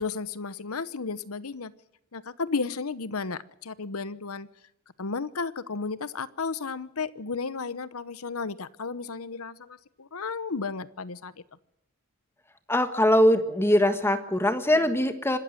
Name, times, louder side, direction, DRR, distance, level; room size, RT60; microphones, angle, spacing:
voice 1, 0.0-1.7 2.1-4.5 5.0-11.3 14.7-14.9, left 4 dB, 85° left, 17 dB, 1.0 m, -33 dB
voice 2, 12.7-15.4, left 1 dB, 10° left, 9 dB, 1.5 m, -22 dB
26.0 x 13.0 x 7.9 m, 0.83 s
head